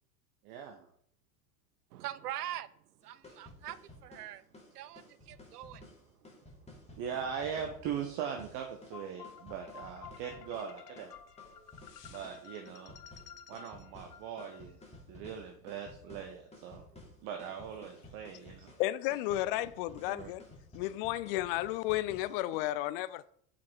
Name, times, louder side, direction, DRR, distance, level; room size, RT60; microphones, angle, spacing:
voice 1, 0.4-0.8 7.0-11.1 12.1-12.9 13.5-14.8 15.1-16.8 17.2-18.7 20.1-20.3, right 7 dB, 50° right, 1.3 m, -40 dB
voice 2, 1.9-6.9 16.9-17.0, right 12 dB, 75° right, 0.7 m, -44 dB
sound 1, 3.0-22.8, left 1 dB, 15° left, 3.3 m, -54 dB
sound 2, 8.9-15.0, left 7 dB, 80° left, 0.8 m, -52 dB
voice 3, 18.8-20.4 20.7-23.3, left 15 dB, 40° left, 0.4 m, -33 dB
7.0 x 5.8 x 4.8 m
figure-of-eight pair, 85°, 47 cm